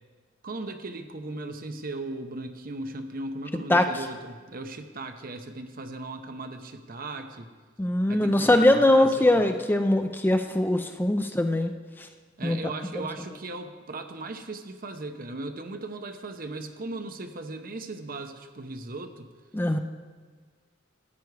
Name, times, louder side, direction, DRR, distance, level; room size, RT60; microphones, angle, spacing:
voice 1, 0.4-7.5 8.1-9.5 12.4-19.3, right 2 dB, 50° right, 7 dB, 0.8 m, -37 dB
voice 2, 7.8-11.7 12.4-12.6 19.5-19.8, left 1 dB, 10° left, 7 dB, 0.4 m, -21 dB
13.0 x 9.7 x 4.7 m, 1.5 s
head